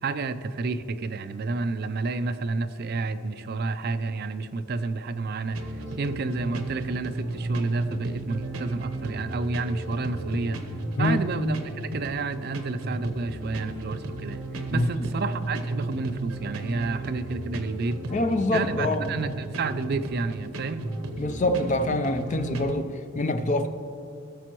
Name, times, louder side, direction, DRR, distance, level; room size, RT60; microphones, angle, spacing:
voice 1, 0.0-10.6 11.0-11.6 11.9-18.0 18.5-20.9, right 3 dB, 45° right, 11 dB, 0.4 m, -30 dB
sound 1, 5.5-22.8, right 2 dB, 80° right, 0.9 m, -35 dB
voice 2, 18.1-19.1 21.2-23.7, left 1 dB, 35° left, 8 dB, 0.5 m, -25 dB
17.0 x 6.8 x 3.0 m, 2.6 s
head